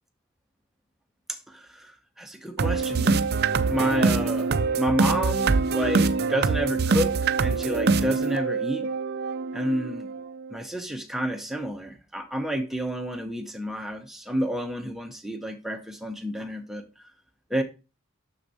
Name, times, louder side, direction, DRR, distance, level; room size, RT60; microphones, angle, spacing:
voice 1, 1.3-3.4 3.7-7.1 7.4-8.9 9.5-10.1 10.5-16.8 17.5-17.6, right 1 dB, ahead, 0.8 m, -30 dB
sound 1, 2.6-10.5, right 4 dB, 45° right, 0.5 m, -24 dB
6.6 x 6.4 x 4.1 m
head